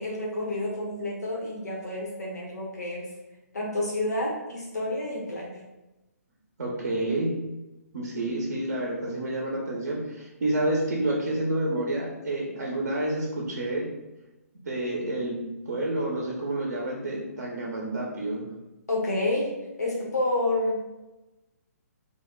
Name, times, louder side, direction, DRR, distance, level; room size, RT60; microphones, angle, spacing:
voice 1, 0.0-3.1 3.5-5.6 18.9-19.5 19.8-20.8, left 1 dB, 90° left, -3 dB, 1.1 m, -29 dB
voice 2, 6.6-7.3 7.9-13.9 14.7-18.4, right 1 dB, 80° right, -3 dB, 0.9 m, -29 dB
3.4 x 2.3 x 3.7 m, 1.0 s
hypercardioid pair, 145°, 9 cm